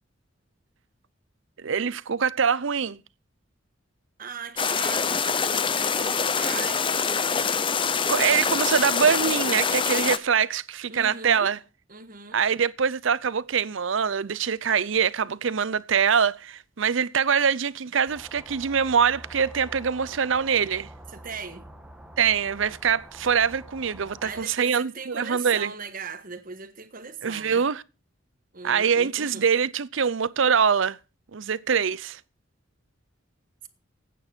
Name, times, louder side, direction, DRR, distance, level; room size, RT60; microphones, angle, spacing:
voice 1, 1.6-3.0 8.1-11.6 12.3-20.9 22.2-25.7 27.2-27.8 28.6-31.0 31.3-32.2, right 7 dB, 65° right, 0.6 m, -24 dB
voice 2, 4.2-7.4 10.9-11.5 11.9-12.4 21.1-21.7 24.2-27.6 28.5-29.4, right 5 dB, 45° right, 1.4 m, -39 dB
sound 1, 4.6-10.2, left 6 dB, 25° left, 0.6 m, -25 dB
sound 2, 18.1-24.5, right 1 dB, 5° right, 1.3 m, -46 dB
15.0 x 9.3 x 4.4 m
head